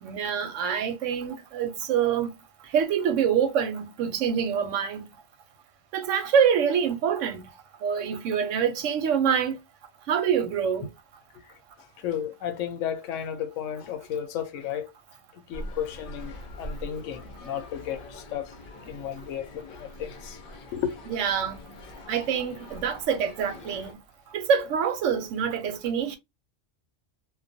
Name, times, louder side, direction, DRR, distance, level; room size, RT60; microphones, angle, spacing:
voice 1, 0.0-2.3 2.7-5.1 5.9-7.4 7.8-9.6 10.1-10.9 21.1-21.6 22.1-23.9 24.3-26.2, right 7 dB, 85° right, 0.9 m, -25 dB
voice 2, 12.0-14.9 15.3-18.5 18.9-20.4 20.7-20.9, left 9 dB, 85° left, 0.9 m, -33 dB
sound 1, 15.5-23.9, left 1 dB, 55° left, 0.7 m, -43 dB
2.3 x 2.2 x 2.6 m
omnidirectional pair, 1.3 m